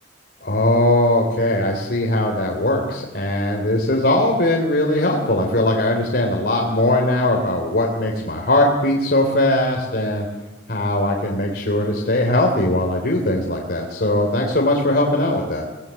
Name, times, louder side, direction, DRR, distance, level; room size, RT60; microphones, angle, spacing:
voice 1, 0.4-10.3 10.7-15.6, left 1 dB, 60° left, 0 dB, 3.4 m, -20 dB
24.0 x 19.0 x 8.5 m, 1.1 s
head